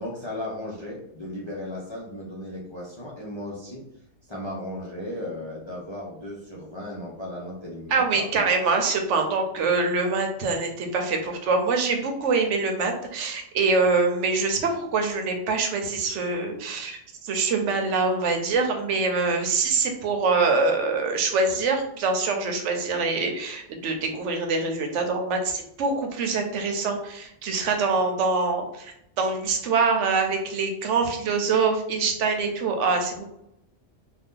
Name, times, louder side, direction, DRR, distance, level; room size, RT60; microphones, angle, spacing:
voice 1, 0.0-3.8 4.3-8.3, left 1 dB, 35° left, -5 dB, 0.5 m, -35 dB
voice 2, 7.9-33.2, right 4 dB, 80° right, 4 dB, 0.9 m, -24 dB
2.6 x 2.3 x 3.6 m, 0.78 s
omnidirectional pair, 1.2 m